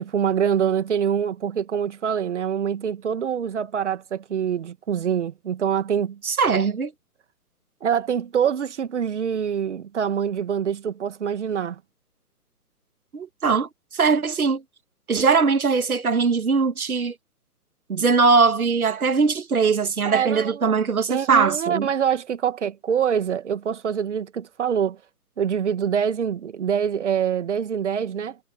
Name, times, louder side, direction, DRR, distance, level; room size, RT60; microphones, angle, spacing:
voice 1, 0.0-6.2 7.8-11.8 20.1-20.7 21.1-25.0 25.4-28.4, right 8 dB, 45° right, 2.0 m, -25 dB
voice 2, 6.2-6.9 13.1-14.6 15.1-17.1 17.9-21.9, right 5 dB, 65° right, 1.7 m, -21 dB
figure-of-eight pair, 135°, 47 cm